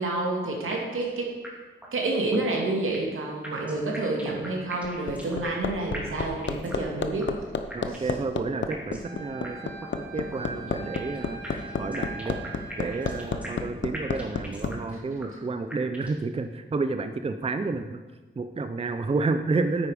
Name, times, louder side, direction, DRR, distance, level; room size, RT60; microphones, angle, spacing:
voice 1, 0.0-1.4 1.9-7.3 7.9-8.0 14.9-15.3, right 2 dB, 85° right, 0 dB, 2.3 m, -29 dB
sound 1, 0.7-1.1 1.4-1.5 1.8-1.9 2.3-3.2 3.4-5.7 5.9-6.9 7.2-7.3 7.7-8.2 8.7-9.1 9.4-9.5 9.8-9.9 10.3-11.2 11.4-13.7 13.9-14.9 15.2-15.3 15.7-16.2, equal, 5° right, 2.4 m, -41 dB
Hammer, 4.6-14.7 16.1-16.2, left 5 dB, 65° left, 0.8 m, -30 dB
voice 2, 7.7-9.6 10.1-12.4 12.8-18.0 18.4-19.9, right 3 dB, 30° right, 8 dB, 0.5 m, -30 dB
Wind instrument woodwind instrument, 9.0-13.3, right 4 dB, 60° right, 2.0 m, -42 dB
9.7 x 8.5 x 5.0 m, 1.3 s
wide cardioid pair, 105°, 21 cm